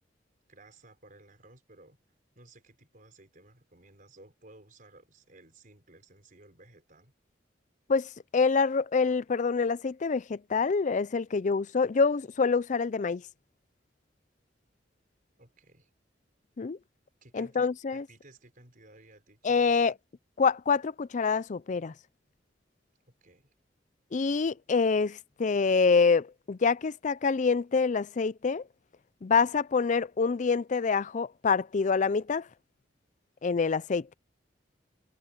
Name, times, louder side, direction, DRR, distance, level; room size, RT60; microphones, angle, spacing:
voice 1, 0.5-2.0 2.3-7.1 15.4-15.9 17.2-19.9 23.1-23.5, right 2 dB, 50° right, 4.9 m, -56 dB
voice 2, 7.9-13.2 16.6-16.8 17.3-18.1 19.4-19.9 20.4-21.9 24.1-28.6 29.2-32.5 33.4-34.1, left 5 dB, 45° left, 0.4 m, -26 dB
head